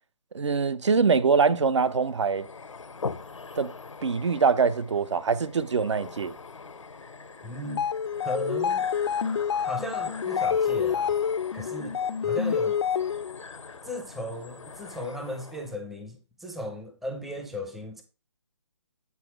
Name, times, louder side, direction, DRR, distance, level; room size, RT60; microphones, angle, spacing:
voice 1, 0.3-2.5 3.6-3.7 4.0-6.3, right 5 dB, 70° right, 0.7 m, -23 dB
sound 1, 1.8-15.8, left 4 dB, 85° left, 0.7 m, -42 dB
voice 2, 7.4-7.9 8.2-8.9 9.5-11.2 11.5-12.8 13.8-18.0, equal, ahead, 0.5 m, -36 dB
sound 2, 7.6-13.4, left 7 dB, 60° left, 0.4 m, -27 dB
8.4 x 4.1 x 4.6 m
figure-of-eight pair, 150°, 16 cm